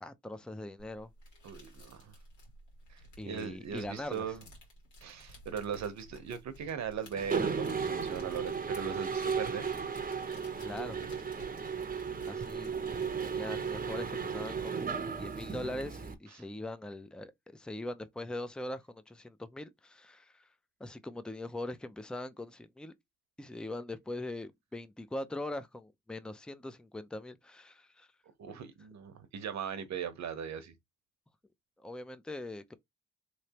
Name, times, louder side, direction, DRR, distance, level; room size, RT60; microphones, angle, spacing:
voice 1, 0.0-1.1 3.2-4.3 10.6-11.0 12.3-12.7 13.2-14.8 15.2-20.5 20.8-22.9 23.4-28.1 28.5-28.6 31.8-32.7, left 1 dB, 5° left, 0.5 m, -41 dB
sound 1, 0.8-14.4, equal, 80° left, 1.9 m, -55 dB
voice 2, 1.4-2.1 2.9-4.4 5.0-9.6 10.9-11.1 28.4-30.7, right 7 dB, 65° right, 0.9 m, -39 dB
Mechanisms, 7.2-16.1, right 6 dB, 30° right, 0.7 m, -35 dB
3.2 x 3.1 x 2.9 m
supercardioid pair, 60°, 29 cm